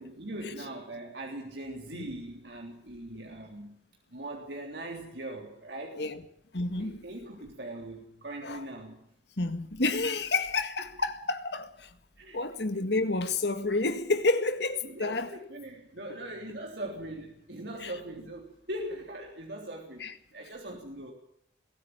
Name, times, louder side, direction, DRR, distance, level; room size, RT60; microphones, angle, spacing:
voice 1, 0.0-3.8 4.1-6.1 6.8-9.1 12.2-12.4 14.8-21.1, right 1 dB, 75° right, 3.5 m, -41 dB
voice 2, 6.5-7.0 8.4-8.6 9.4-11.9 12.3-15.3 17.8-17.9 20.0-20.1, left 3 dB, 75° left, 1.9 m, -29 dB
22.0 x 14.0 x 8.7 m
head